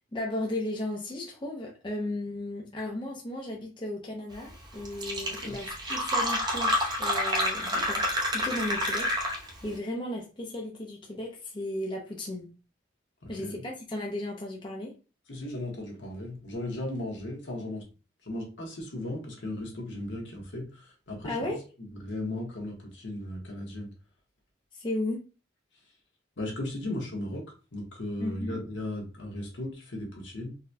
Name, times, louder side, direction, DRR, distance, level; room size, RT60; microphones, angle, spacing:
voice 1, 0.1-8.1 8.3-12.5 13.3-14.9 21.2-21.6 24.7-25.3 28.2-28.6, left 1 dB, 25° left, 0.5 m, -35 dB
Fill (with liquid), 4.5-4.6 4.9-9.6, equal, 20° right, 0.7 m, -28 dB
voice 2, 13.2-13.6 15.3-17.8 18.2-21.6 22.0-23.9 26.4-27.4 27.7-30.6, left 1 dB, 75° left, 1.1 m, -36 dB
3.9 x 2.2 x 2.6 m
head